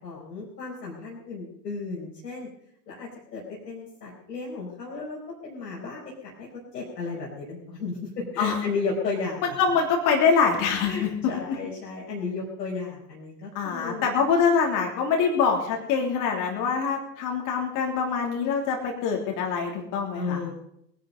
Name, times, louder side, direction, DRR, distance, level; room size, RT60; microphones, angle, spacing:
voice 1, 0.0-2.5 2.9-9.6 10.8-14.1 20.1-20.5, left 4 dB, 75° left, -4 dB, 4.7 m, -34 dB
voice 2, 9.4-11.1 13.5-20.4, left 5 dB, 40° left, 0 dB, 3.2 m, -24 dB
20.5 x 11.0 x 5.3 m, 0.75 s
hypercardioid pair, 105°, 50 cm